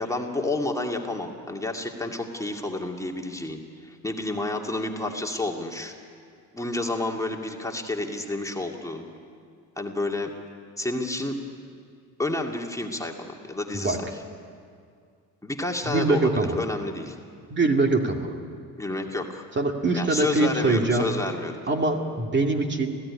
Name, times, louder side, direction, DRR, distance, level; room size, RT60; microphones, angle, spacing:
voice 1, 0.0-5.9 6.5-9.1 9.8-10.3 10.8-11.4 12.2-14.0 15.4-17.2 18.8-19.4 19.9-21.6, left 2 dB, 10° left, 1 dB, 2.4 m, -30 dB
voice 2, 15.8-16.6 17.5-18.3 19.6-21.1 21.7-23.0, right 2 dB, 30° right, 3 dB, 2.4 m, -23 dB
26.5 x 16.0 x 9.9 m, 2.2 s
cardioid pair, 90°, 34 cm